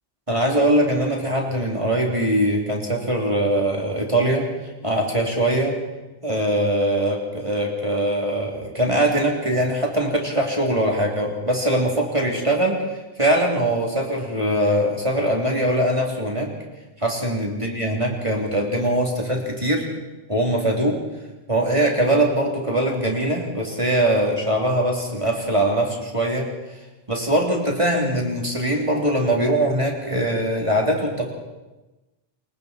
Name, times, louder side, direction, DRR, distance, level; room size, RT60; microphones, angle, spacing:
voice 1, 0.3-4.4 4.8-5.7 6.2-12.8 13.2-16.5 17.0-19.9 20.3-21.0 21.5-26.5 27.1-31.3, right 1 dB, 25° right, -1 dB, 3.5 m, -22 dB
27.5 x 24.0 x 4.5 m, 1.1 s
omnidirectional pair, 1.2 m